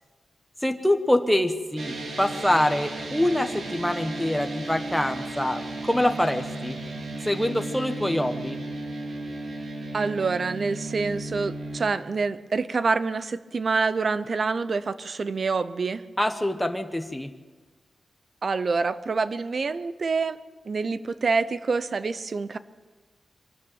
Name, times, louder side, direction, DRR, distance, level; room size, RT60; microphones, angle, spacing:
voice 1, 0.6-6.8 7.2-8.6 16.2-17.3, left 1 dB, 5° left, 6 dB, 1.1 m, -25 dB
sound 1, 1.8-11.8, right 2 dB, 65° right, 3.0 m, -35 dB
voice 2, 9.9-16.0 18.4-20.4 20.7-22.6, right 4 dB, 45° right, 14 dB, 0.8 m, -26 dB
23.0 x 13.5 x 9.0 m, 1.4 s
wide cardioid pair, 165°, 0 cm